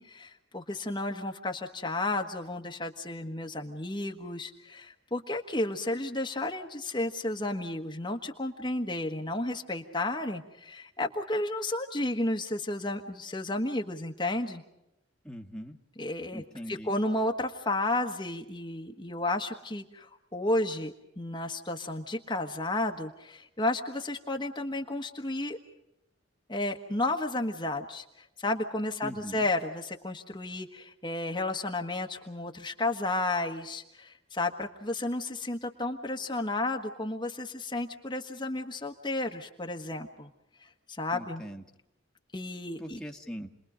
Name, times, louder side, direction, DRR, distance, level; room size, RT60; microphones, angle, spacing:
voice 1, 0.0-14.6 16.0-25.6 26.5-40.3 40.6-41.4 42.3-43.0, left 2 dB, 25° left, 2 dB, 1.4 m, -32 dB
voice 2, 15.2-15.8 16.3-17.0 29.0-29.5 41.1-41.6 42.8-43.5, equal, 5° left, 1 dB, 1.7 m, -41 dB
30.0 x 21.5 x 5.1 m, 0.88 s
head